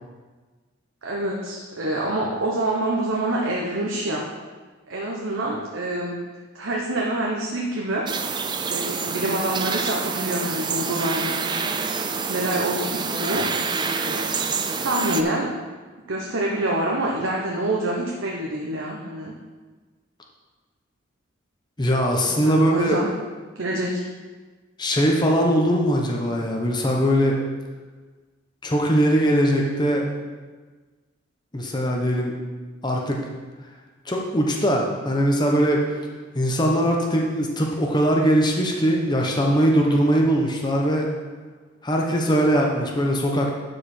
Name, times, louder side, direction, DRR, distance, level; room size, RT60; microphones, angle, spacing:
voice 1, 1.0-4.2 4.9-6.2 6.5-8.0 8.7-11.7 12.3-13.5 14.0-14.3 14.8-15.5 16.1-19.3 22.3-23.1 23.6-24.0, right 1 dB, 75° right, -2 dB, 1.0 m, -26 dB
sound 1, 8.1-15.2, right 5 dB, 20° right, 0.4 m, -27 dB
voice 2, 21.8-23.0 24.8-27.4 28.6-30.0 31.5-32.3 32.8-33.2 34.1-35.8 36.3-41.1 41.8-43.5, equal, 20° left, 0 dB, 1.0 m, -21 dB
11.5 x 5.0 x 4.4 m, 1.4 s
head